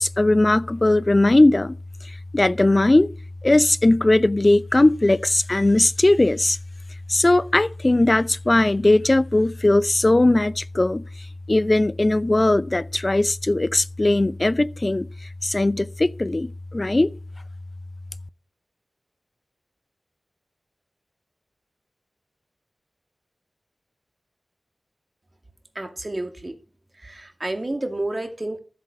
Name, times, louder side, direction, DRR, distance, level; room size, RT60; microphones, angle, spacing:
voice 1, 0.0-1.8 2.3-3.1 3.4-6.6 7.1-11.0 11.5-15.1 15.4-17.1, left 2 dB, 35° left, 0.6 m, -19 dB
voice 2, 25.7-26.5 27.0-28.6, right 2 dB, 30° right, 2.4 m, -30 dB
14.0 x 7.9 x 6.3 m
wide cardioid pair, 60°, 0 cm